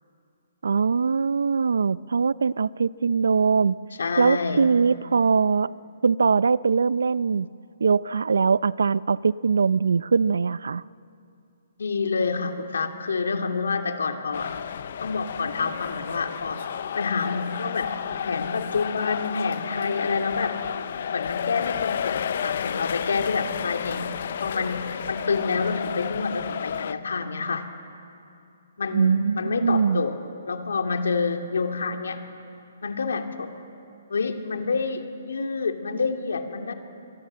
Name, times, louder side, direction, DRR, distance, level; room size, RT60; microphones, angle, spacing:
voice 1, 0.6-3.7 4.2-5.7 6.0-7.5 7.8-10.8 28.9-30.0, right 5 dB, 85° right, 20 dB, 0.5 m, -22 dB
voice 2, 4.0-4.6 11.8-14.5 15.0-16.6 16.9-20.6 21.1-27.7 28.8-30.2 30.5-32.3 32.8-33.5 34.1-36.7, left 4 dB, 80° left, 5 dB, 2.6 m, -28 dB
sound 1, 14.3-26.9, left 8 dB, 45° left, 0.6 m, -31 dB
24.0 x 23.5 x 7.7 m, 2.6 s
hypercardioid pair, 175°, 0 cm